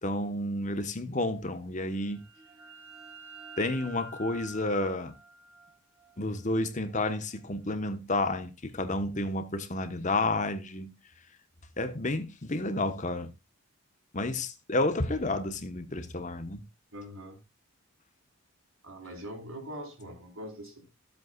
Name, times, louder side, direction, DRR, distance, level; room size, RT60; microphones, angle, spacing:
voice 1, 0.0-2.2 3.6-5.1 6.2-10.9 11.8-13.3 14.1-16.6, left 2 dB, 35° left, 1.2 m, -31 dB
sound 1, 1.9-7.4, right 2 dB, 15° right, 3.2 m, -49 dB
voice 2, 16.9-17.4 18.8-20.9, equal, 80° right, 4.7 m, -42 dB
15.5 x 8.0 x 2.4 m
head